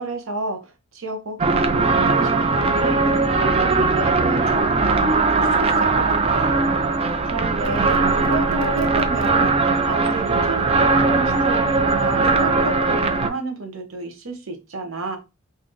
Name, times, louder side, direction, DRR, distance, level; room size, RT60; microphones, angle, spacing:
voice 1, 0.0-3.0 3.4-6.6 7.3-9.6 9.8-15.2, right 3 dB, 85° right, 0.8 m, -31 dB
sound 1, 1.4-13.3, right 3 dB, 30° right, 0.4 m, -19 dB
2.6 x 2.6 x 3.6 m
head